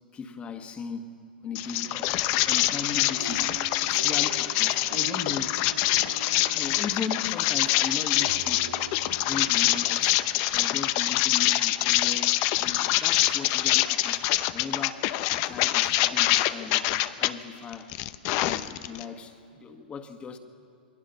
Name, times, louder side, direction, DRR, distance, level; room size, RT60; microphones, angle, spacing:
voice 1, 0.1-1.2 1.4-3.6 3.9-5.6 6.0-6.1 6.5-8.8 9.2-10.2 10.5-14.3 14.5-16.9 17.2-17.9 18.3-20.4, left 5 dB, 20° left, 7 dB, 1.8 m, -38 dB
sound 1, 1.5-17.3 17.7-19.0, left 16 dB, 45° left, 0.8 m, -25 dB
sound 2, 3.2-11.3 11.9-12.0 12.3-12.5, right 7 dB, 90° right, 1.8 m, -44 dB
28.5 x 21.0 x 5.8 m, 2.4 s
hypercardioid pair, 120°, 5 cm